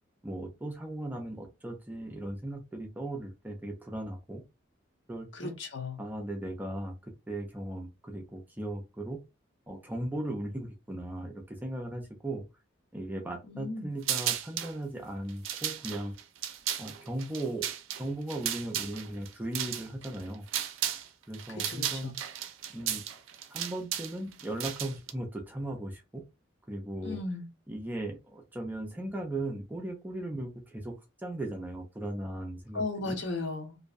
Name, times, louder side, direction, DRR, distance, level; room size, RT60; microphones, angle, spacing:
voice 1, 0.2-4.4 5.1-5.6 6.0-9.2 9.7-12.4 12.9-16.1 16.8-17.7 18.0-20.4 21.3-22.1 22.7-23.0 23.5-26.2 26.7-27.2 27.7-30.9 31.2-33.2, right 1 dB, 10° right, 2 dB, 0.4 m, -37 dB
voice 2, 5.3-6.0 13.5-13.9 21.5-22.2 27.0-27.5 32.7-33.8, left 3 dB, 65° left, 3 dB, 0.8 m, -36 dB
sound 1, 14.0-14.7 15.3-21.1 21.3-25.1, right 10 dB, 80° right, 0.4 m, -34 dB
2.5 x 2.1 x 2.4 m, 0.25 s
head